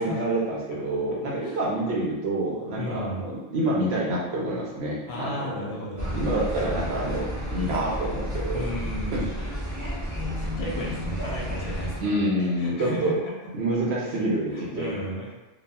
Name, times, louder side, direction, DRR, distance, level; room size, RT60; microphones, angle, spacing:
voice 1, 0.0-5.6 6.0-8.7 9.1-9.2 12.0-13.1 13.5-15.0, right 1 dB, 65° right, -4 dB, 0.8 m, -27 dB
voice 2, 2.8-3.3 5.1-6.2 8.5-9.3 10.4-13.3 14.0-14.3 14.5-15.3, left 1 dB, 65° left, -3 dB, 0.8 m, -34 dB
sound 1, 6.0-12.0, equal, 25° right, 0.4 m, -31 dB
2.8 x 2.3 x 2.2 m, 1.1 s
omnidirectional pair, 1.2 m